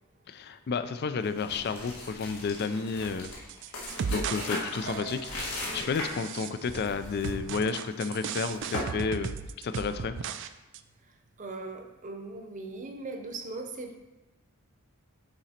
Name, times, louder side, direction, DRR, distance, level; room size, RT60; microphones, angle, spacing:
voice 1, 0.3-3.3 4.1-10.2, left 5 dB, 45° left, 11 dB, 0.4 m, -32 dB
sound 1, 1.2-6.3 6.7-7.3 7.6-7.8 8.3-8.9, left 1 dB, 70° left, 1.7 m, -38 dB
sound 2, 3.2-4.5 4.7-5.4 6.0-6.9 7.2-10.5 10.7-10.8, right 6 dB, 55° right, 0.4 m, -36 dB
voice 2, 11.4-14.0, right 3 dB, 35° right, 3 dB, 0.8 m, -39 dB
9.0 x 4.0 x 4.3 m, 1.1 s
head